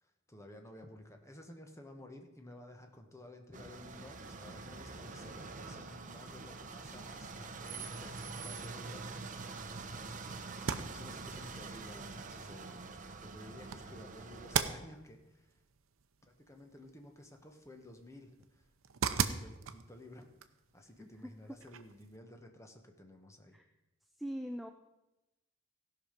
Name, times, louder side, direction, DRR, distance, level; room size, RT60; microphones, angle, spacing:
voice 1, 0.0-9.1 10.0-15.6 16.3-18.7 19.2-20.4 20.7-23.6, left 1 dB, 15° left, 4 dB, 1.1 m, -54 dB
sound 1, 3.5-14.6, right 4 dB, 40° right, 0.8 m, -45 dB
sound 2, 10.5-22.2, right 6 dB, 90° right, 0.7 m, -41 dB
voice 2, 24.2-24.7, equal, ahead, 5 dB, 0.4 m, -40 dB
16.5 x 5.9 x 5.1 m, 0.97 s
head